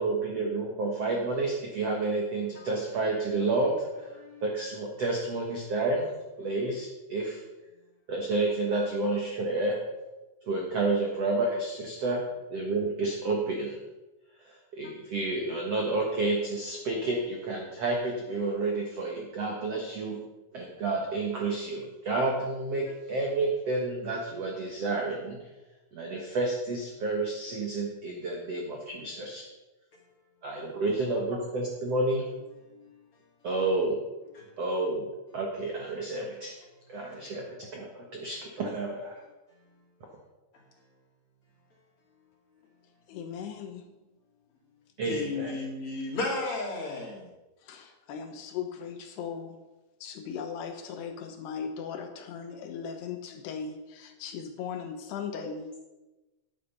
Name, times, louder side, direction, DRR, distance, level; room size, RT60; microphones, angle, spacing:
voice 1, 0.0-4.1 4.4-6.1 6.4-7.4 8.1-9.8 10.4-12.2 12.5-13.8 14.4-20.2 20.5-25.4 25.9-29.4 30.4-32.2 33.4-34.0 34.6-35.1 35.3-36.5 36.9-39.2 45.0-45.5, right 2 dB, 65° right, 1.5 m, -30 dB
voice 2, 43.1-43.8 47.6-49.6 50.0-55.9, left 6 dB, 75° left, 2.8 m, -38 dB
voice 3, 45.0-47.3, left 3 dB, 40° left, 2.4 m, -33 dB
12.0 x 9.8 x 5.5 m
omnidirectional pair, 5.2 m